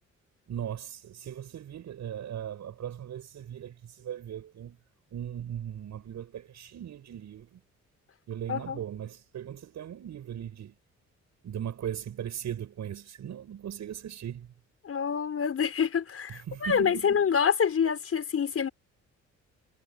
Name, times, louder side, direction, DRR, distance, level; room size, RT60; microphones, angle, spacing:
voice 1, 0.5-4.8 5.1-7.6 8.3-10.7 11.4-14.5 16.3-17.3, right 10 dB, 65° right, 7.4 m, -38 dB
voice 2, 8.5-8.8 14.8-18.7, left 7 dB, 50° left, 6.1 m, -27 dB
cardioid pair, 90°, 30 cm